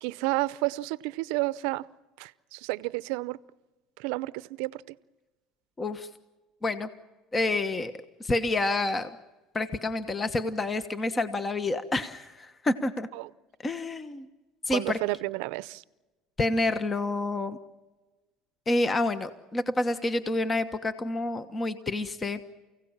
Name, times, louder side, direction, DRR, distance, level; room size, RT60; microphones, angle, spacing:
voice 1, 0.0-1.9 2.2-3.4 4.0-5.0 13.1-13.3 14.7-15.8, right 21 dB, 80° right, 19 dB, 0.6 m, -31 dB
voice 2, 5.8-6.1 6.6-6.9 7.3-7.9 8.2-9.1 9.5-13.1 13.6-14.3 14.7-15.0 16.4-17.6 18.7-22.5, left 2 dB, 25° left, 11 dB, 1.2 m, -28 dB
29.5 x 17.0 x 7.3 m, 1.2 s
supercardioid pair, 105°, 0 cm